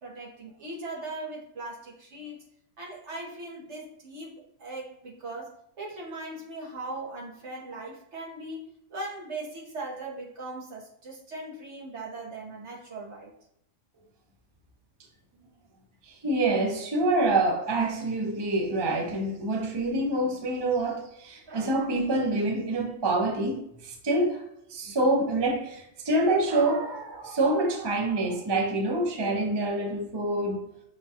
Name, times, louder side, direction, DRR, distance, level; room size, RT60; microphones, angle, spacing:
voice 1, 0.0-2.4 2.8-8.6 8.9-13.3, right 2 dB, 65° right, 1.4 m, -39 dB
voice 2, 16.2-24.4 24.7-30.6, right 2 dB, 30° right, 0.5 m, -26 dB
5.8 x 2.3 x 2.7 m
omnidirectional pair, 1.3 m